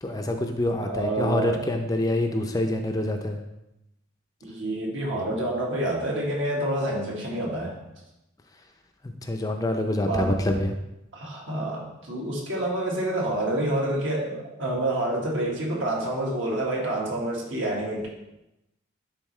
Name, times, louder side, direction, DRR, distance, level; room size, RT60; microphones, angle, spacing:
voice 1, 0.0-3.4 9.2-10.7, left 1 dB, 20° left, 4 dB, 0.5 m, -26 dB
voice 2, 0.8-1.6 4.4-7.8 10.0-10.4 11.1-18.1, right 1 dB, 70° right, -2 dB, 1.7 m, -28 dB
11.0 x 4.1 x 3.1 m, 0.89 s
head